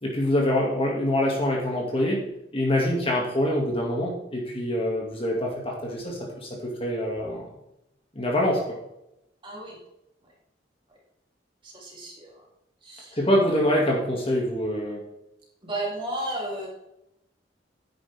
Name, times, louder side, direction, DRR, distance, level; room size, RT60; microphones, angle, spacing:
voice 1, 0.0-2.2 2.5-7.4 8.1-8.6 13.1-15.0, left 1 dB, 30° left, -2 dB, 2.4 m, -25 dB
voice 2, 9.4-9.8 11.6-12.5 12.8-13.2 15.6-16.7, right 1 dB, 30° right, -3 dB, 3.4 m, -34 dB
10.5 x 9.2 x 3.6 m, 0.83 s
head